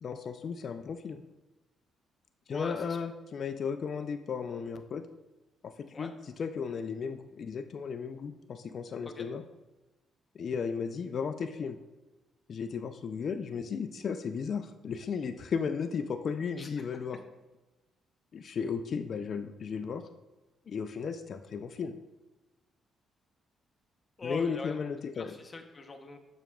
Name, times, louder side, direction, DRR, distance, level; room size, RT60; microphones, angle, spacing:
voice 1, 0.0-1.2 2.5-5.0 5.6-6.1 6.4-9.4 10.4-11.8 12.5-17.2 18.3-20.0 20.7-21.9 24.2-25.3, left 6 dB, 55° left, 8 dB, 0.3 m, -35 dB
voice 2, 2.5-3.0 5.9-6.1 9.0-9.3 16.6-16.9 24.2-24.8 25.1-26.2, left 3 dB, 30° left, 4 dB, 0.8 m, -41 dB
6.9 x 5.9 x 2.3 m, 1.1 s
cardioid pair, 90°, 0 cm